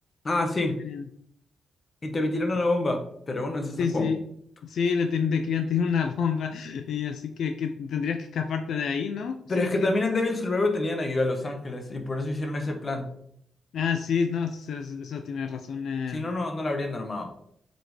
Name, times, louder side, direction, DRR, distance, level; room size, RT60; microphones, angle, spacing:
voice 1, 0.2-0.8 2.0-4.1 9.5-13.1 16.1-17.3, left 2 dB, 30° left, 4 dB, 1.2 m, -27 dB
voice 2, 3.8-4.2 4.6-9.9 13.7-16.2, left 6 dB, 75° left, 7 dB, 0.5 m, -28 dB
7.5 x 5.2 x 3.3 m, 0.68 s
wide cardioid pair, 135°, 0 cm